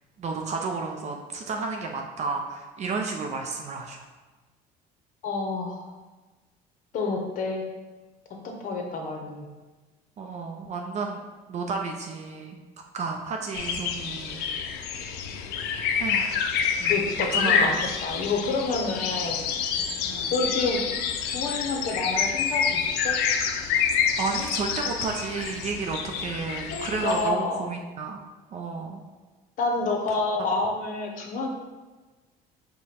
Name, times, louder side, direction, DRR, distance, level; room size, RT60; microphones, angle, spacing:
voice 1, 0.2-4.0 10.2-11.2 11.5-12.6 12.9-14.4 16.0-16.4 17.3-17.8 20.0-20.3 24.2-28.2 28.5-29.0, right 4 dB, 45° right, 2 dB, 0.5 m, -32 dB
voice 2, 5.2-5.9 6.9-7.6 8.4-9.4 16.8-19.4 20.3-20.8 21.3-23.2 26.7-27.7 29.6-31.5, left 3 dB, 55° left, 2 dB, 0.8 m, -28 dB
sound 1, 13.5-27.3, left 7 dB, 80° left, 0.4 m, -27 dB
4.9 x 2.2 x 4.2 m, 1.3 s
cardioid pair, 120°, 17 cm